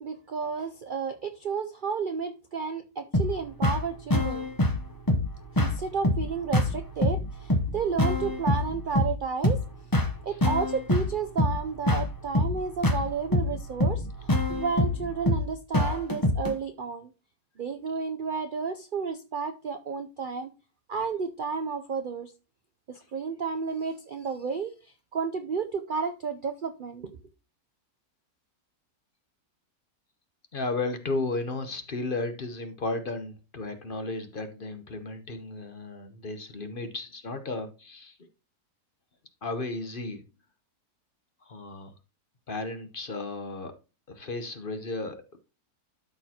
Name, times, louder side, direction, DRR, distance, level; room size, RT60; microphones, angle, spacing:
voice 1, 0.0-4.5 5.5-9.6 10.2-17.1 17.6-20.5 20.9-22.3 22.9-27.1, right 5 dB, 80° right, 8 dB, 0.4 m, -32 dB
sound 1, 3.1-16.5, left 1 dB, 20° left, 0.6 m, -26 dB
voice 2, 30.5-38.2 39.4-40.2 41.4-41.9 42.5-43.7 44.1-45.4, left 2 dB, 40° left, 8 dB, 0.9 m, -34 dB
12.5 x 4.6 x 2.8 m, 0.30 s
omnidirectional pair, 1.7 m